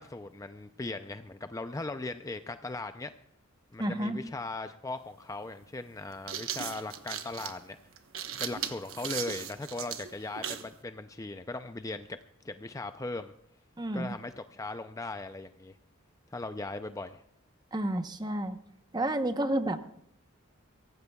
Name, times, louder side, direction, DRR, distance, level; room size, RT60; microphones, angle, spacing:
voice 1, 0.0-3.1 3.7-7.8 8.4-12.2 12.4-13.3 13.9-15.8 16.3-17.2, left 2 dB, 15° left, 9 dB, 0.4 m, -38 dB
voice 2, 3.8-4.2 13.8-14.2 17.7-18.6 18.9-19.9, right 1 dB, 20° right, 8 dB, 0.9 m, -30 dB
sound 1, 4.9-5.0 6.0-10.7, right 9 dB, 75° right, 1.1 m, -37 dB
23.5 x 17.5 x 2.3 m, 0.72 s
head